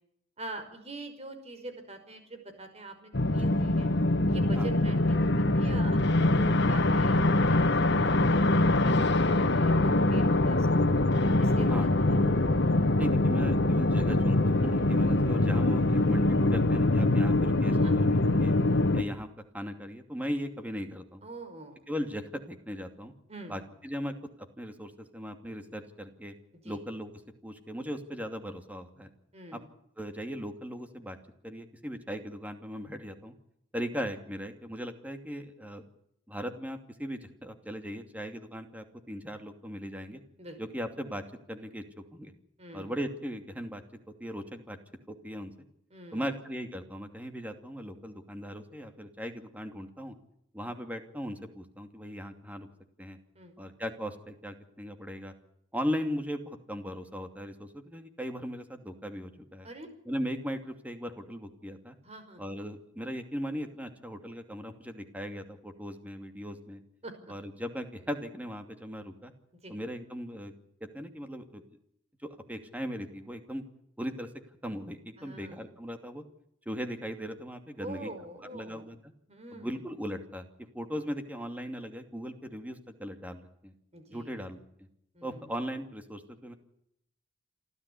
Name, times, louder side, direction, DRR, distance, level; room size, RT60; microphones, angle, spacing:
voice 1, 0.4-3.9 4.3-10.7 11.4-11.7 12.0-12.2 17.8-18.0 21.2-21.9 23.3-23.6 26.6-26.8 29.3-29.6 40.4-40.6 42.6-43.0 45.9-46.3 53.4-53.5 59.6-59.9 62.0-62.4 67.0-67.1 69.6-69.7 75.2-75.6 77.8-78.8 79.3-79.8 83.9-84.5 85.1-85.5, right 2 dB, 35° right, 7 dB, 5.4 m, -44 dB
sound 1, 3.1-19.0, left 2 dB, 60° left, 1.6 m, -24 dB
voice 2, 13.0-18.5 18.9-21.3 21.9-23.1 23.5-26.3 26.6-27.1 27.4-29.1 29.5-29.6 30.0-31.2 31.4-33.3 33.7-35.8 36.3-40.2 40.6-41.8 42.1-42.3 42.7-43.8 44.2-44.8 45.1-45.5 46.1-50.1 50.5-52.7 53.0-53.2 53.6-55.3 55.7-59.7 60.0-62.0 62.4-66.8 67.3-69.3 69.7-70.5 70.8-71.6 72.2-73.7 74.0-74.3 74.6-76.2 76.7-78.1 78.5-79.0 79.5-80.5 80.7-83.7 84.1-84.6 85.2-86.5, equal, 10° right, 6 dB, 2.6 m, -38 dB
28.0 x 14.0 x 8.5 m, 0.75 s
head